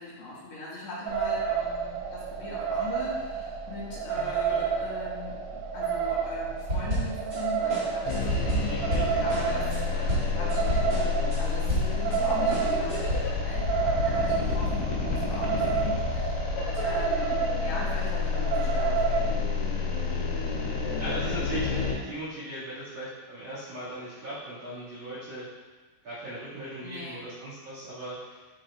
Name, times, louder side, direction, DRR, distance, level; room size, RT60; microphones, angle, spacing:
voice 1, 0.0-8.8 9.2-19.5 26.8-27.2, left 2 dB, 70° left, -8 dB, 3.3 m, -40 dB
sound 1, 1.1-19.3, right 6 dB, 85° right, 2.9 m, -30 dB
voice 2, 4.1-4.6 8.7-9.0 15.8-16.0 20.1-20.4 20.9-25.5 26.0-28.4, right 1 dB, 50° right, -11 dB, 2.8 m, -38 dB
sound 2, 6.7-7.4 7.7-12.2 12.5-13.2, right 1 dB, 65° right, 1.0 m, -30 dB
sound 3, 8.1-21.9, left 5 dB, 85° left, 4.3 m, -29 dB
12.0 x 4.5 x 2.4 m, 1.3 s
omnidirectional pair, 5.5 m